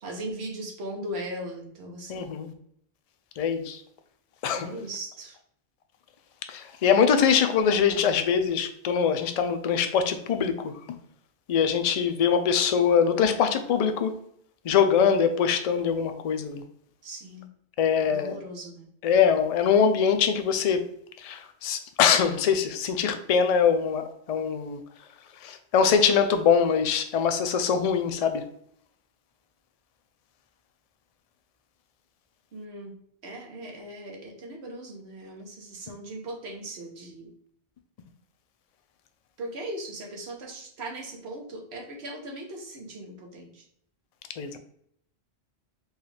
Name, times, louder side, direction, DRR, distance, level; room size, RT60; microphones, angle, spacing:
voice 1, 0.0-2.3 4.5-5.4 17.0-17.5 18.0-18.9 32.5-32.9 33.2-37.3 39.4-43.6, right 1 dB, 85° right, 1 dB, 1.2 m, -38 dB
voice 2, 2.1-2.5 3.4-3.8 4.4-4.7 6.5-10.7 11.5-14.1 14.6-16.6 17.8-18.4 19.0-20.8 21.2-24.8 25.4-28.4 44.4-44.6, left 7 dB, 55° left, 7 dB, 0.4 m, -23 dB
4.5 x 2.3 x 3.2 m, 0.69 s
omnidirectional pair, 1.1 m